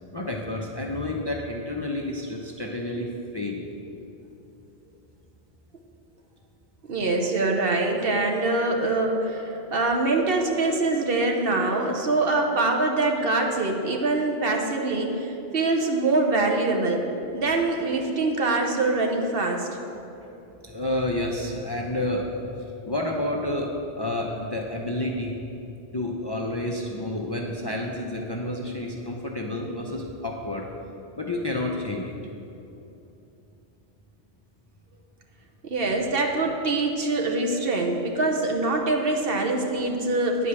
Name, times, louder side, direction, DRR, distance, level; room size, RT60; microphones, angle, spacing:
voice 1, 0.1-3.7 20.6-22.4 22.8-23.7 24.0-25.4 25.9-30.7 31.2-32.2, left 1 dB, 30° left, 0 dB, 0.6 m, -30 dB
voice 2, 6.9-17.0 17.3-19.7 35.6-40.5, right 2 dB, 60° right, 2 dB, 1.1 m, -24 dB
9.5 x 4.9 x 7.0 m, 2.9 s
omnidirectional pair, 1.2 m